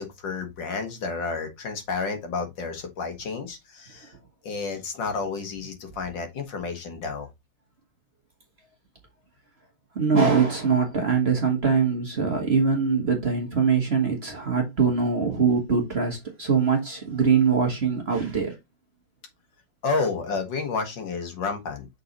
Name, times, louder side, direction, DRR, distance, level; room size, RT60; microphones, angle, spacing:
voice 1, 0.0-4.1 4.4-7.3 19.8-21.9, left 4 dB, 65° left, 2.0 m, -30 dB
voice 2, 9.9-18.5, right 5 dB, 35° right, 1.5 m, -23 dB
6.5 x 4.1 x 3.9 m
omnidirectional pair, 2.2 m